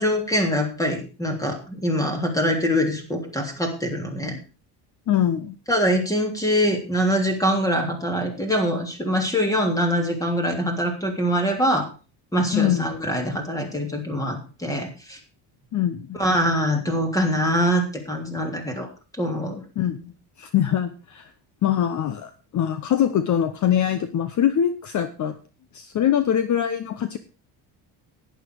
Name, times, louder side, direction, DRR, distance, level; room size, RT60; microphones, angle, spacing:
voice 1, 0.0-4.4 5.7-11.9 12.3-15.2 16.1-18.9 19.2-19.6, equal, 10° left, 4 dB, 3.2 m, -24 dB
voice 2, 5.1-5.6 12.5-12.9 15.7-16.2 19.8-20.1 20.4-21.3 21.6-25.3 25.7-27.2, left 10 dB, 45° left, 11 dB, 1.0 m, -23 dB
11.5 x 10.5 x 4.7 m, 0.34 s
cardioid pair, 130°, 43 cm